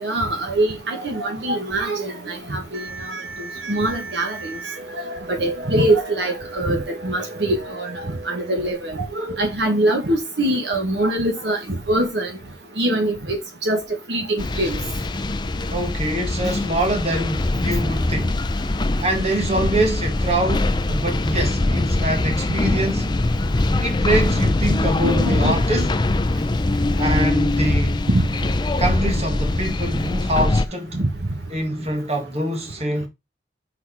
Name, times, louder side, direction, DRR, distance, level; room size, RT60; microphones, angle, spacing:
voice 1, 0.0-3.2 3.7-4.4 5.0-7.9 8.3-11.6 11.9-12.3 12.8-13.8 14.1-14.8 25.0-25.6 28.1-28.2 31.0-31.1, right 1 dB, 60° right, 1.4 m, -23 dB
sound 1, 2.7-8.7, right 3 dB, 85° right, 1.9 m, -37 dB
sound 2, 14.4-30.7, left 2 dB, 25° left, 0.5 m, -22 dB
voice 2, 15.7-18.4 19.0-23.3 23.8-25.9 27.0-28.0 28.8-31.0 31.5-33.1, right 1 dB, 35° right, 1.8 m, -24 dB
6.2 x 4.1 x 4.8 m
head